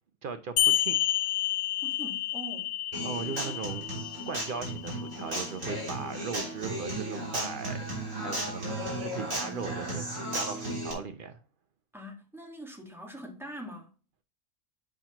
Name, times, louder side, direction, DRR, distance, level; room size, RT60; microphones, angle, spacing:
voice 1, 0.2-1.0 3.0-3.9 4.3-7.8 8.1-11.4, right 5 dB, 85° right, 0.4 m, -38 dB
sound 1, 0.6-5.6, left 13 dB, 90° left, 1.1 m, -30 dB
voice 2, 1.8-2.7 3.4-3.5 11.9-13.9, right 1 dB, ahead, 1.3 m, -43 dB
Human voice / Acoustic guitar, 2.9-10.9, right 1 dB, 55° right, 3.7 m, -35 dB
8.0 x 5.8 x 2.9 m
omnidirectional pair, 1.6 m